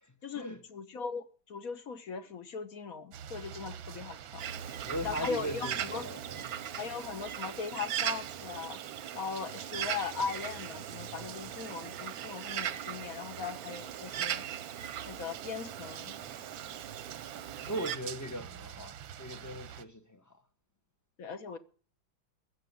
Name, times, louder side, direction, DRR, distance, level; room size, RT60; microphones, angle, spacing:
voice 1, 0.2-4.4 5.0-6.1 6.8-8.8 9.1-14.4 15.0-16.2 21.2-21.6, left 5 dB, 55° left, 1.4 m, -39 dB
sound 1, 3.1-19.8, right 9 dB, 90° right, 1.6 m, -47 dB
Bird, 4.4-18.0, right 10 dB, 60° right, 1.1 m, -39 dB
voice 2, 4.8-6.4 17.6-20.2, equal, 15° left, 0.6 m, -39 dB
15.0 x 6.8 x 9.3 m
omnidirectional pair, 2.1 m